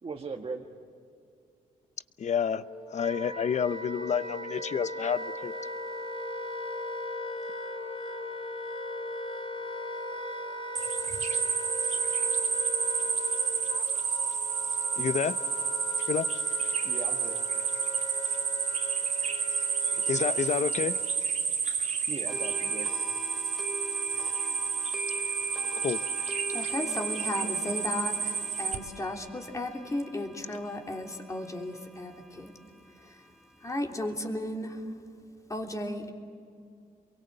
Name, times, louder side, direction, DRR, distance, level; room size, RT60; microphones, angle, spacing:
voice 1, 0.0-0.7 16.8-17.4 22.1-22.9, right 4 dB, 40° right, 1 dB, 1.7 m, -38 dB
voice 2, 2.2-2.6 2.9-5.5 15.0-15.4 16.1-16.3 20.1-21.0 25.8-26.0, left 7 dB, 55° left, 14 dB, 0.8 m, -29 dB
Wind instrument woodwind instrument, 2.4-21.2, left 1 dB, 35° left, 2.6 m, -38 dB
sound 1, 10.8-28.8, right 6 dB, 55° right, 2.5 m, -30 dB
sound 2, 22.3-33.9, equal, ahead, 1.0 m, -43 dB
voice 3, 26.5-32.5 33.0-33.2 33.6-34.9 35.5-36.1, left 1 dB, 20° left, 2 dB, 3.2 m, -35 dB
28.5 x 23.0 x 8.0 m, 2.4 s
cardioid pair, 95°, 14 cm